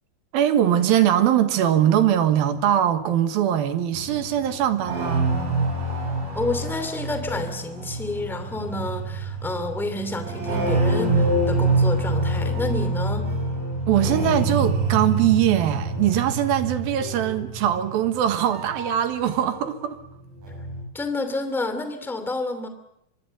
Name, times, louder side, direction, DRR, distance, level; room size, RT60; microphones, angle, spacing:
voice 1, 0.3-5.3 13.9-20.0, right 10 dB, 80° right, 3.3 m, -21 dB
sound 1, 3.9-19.7 20.0-20.8, right 2 dB, 65° right, 8.0 m, -26 dB
voice 2, 6.3-13.3 20.9-22.7, left 2 dB, ahead, 1.9 m, -29 dB
24.5 x 22.5 x 7.6 m
omnidirectional pair, 4.3 m